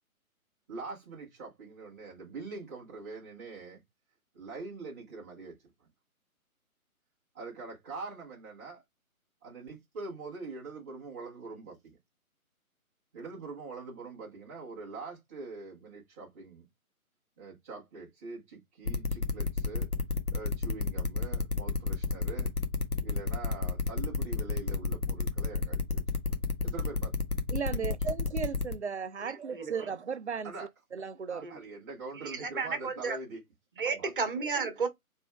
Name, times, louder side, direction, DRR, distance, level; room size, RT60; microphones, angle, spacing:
voice 1, 0.7-3.8 4.3-5.9 7.3-8.8 9.4-12.0 13.1-16.7 17.4-19.9 20.3-22.5 23.0-26.0 26.3-27.1 27.7-27.9 30.4-30.7 31.3-33.4 33.8-34.1, right 3 dB, 10° right, 0.9 m, -43 dB
sound 1, 18.8-28.7, left 3 dB, 85° left, 1.3 m, -30 dB
voice 2, 27.5-30.5 30.9-31.5, right 6 dB, 50° right, 0.5 m, -35 dB
voice 3, 29.2-29.7 31.4-31.6 32.2-33.2 33.8-34.9, right 4 dB, 35° right, 1.2 m, -33 dB
4.9 x 3.5 x 2.2 m
figure-of-eight pair, 140°, 44 cm